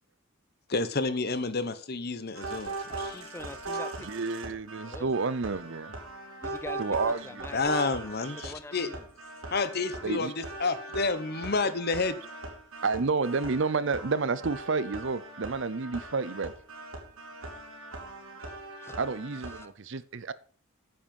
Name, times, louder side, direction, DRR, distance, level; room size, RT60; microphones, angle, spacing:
voice 1, 0.7-3.2 7.5-8.9 9.5-12.2, left 3 dB, 50° left, 13 dB, 0.9 m, -30 dB
sound 1, 2.3-19.6, right 2 dB, 85° right, 3.0 m, -40 dB
voice 2, 2.9-4.1 4.8-5.1 6.4-6.8 7.2-7.8 8.4-9.0 18.8-19.0, left 2 dB, 10° left, 14 dB, 0.5 m, -44 dB
voice 3, 4.0-6.0 6.8-7.5 8.4-8.5 10.0-10.3 12.8-16.5 19.0-20.3, right 4 dB, 60° right, 17 dB, 0.6 m, -30 dB
9.8 x 7.7 x 5.4 m, 0.42 s
head